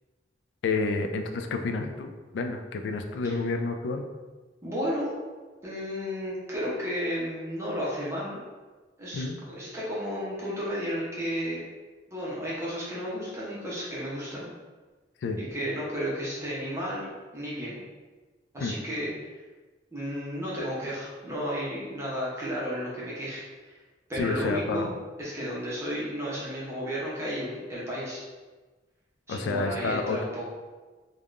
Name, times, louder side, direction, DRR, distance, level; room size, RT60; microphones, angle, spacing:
voice 1, 0.6-4.0 9.1-9.4 15.2-15.4 18.6-18.8 24.2-24.9 29.3-30.2, left 3 dB, 75° left, 5 dB, 0.3 m, -29 dB
voice 2, 4.6-5.1 5.6-8.4 9.0-11.6 12.1-14.5 15.4-17.1 17.3-17.8 18.5-19.4 19.9-23.8 24.1-24.9 25.2-28.2 29.3-30.5, equal, 15° right, -7 dB, 0.6 m, -33 dB
3.4 x 2.1 x 2.4 m, 1.3 s
head